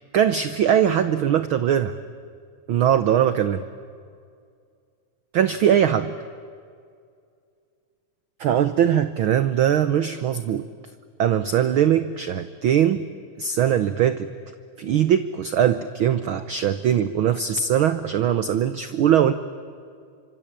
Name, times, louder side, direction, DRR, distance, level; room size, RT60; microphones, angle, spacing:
voice 1, 0.1-2.0 2.7-3.6 5.3-6.1 8.4-10.6 11.2-13.0 13.4-14.3 14.8-19.3, right 9 dB, 75° right, 12 dB, 1.2 m, -21 dB
26.0 x 25.5 x 8.8 m, 2.2 s
omnidirectional pair, 3.4 m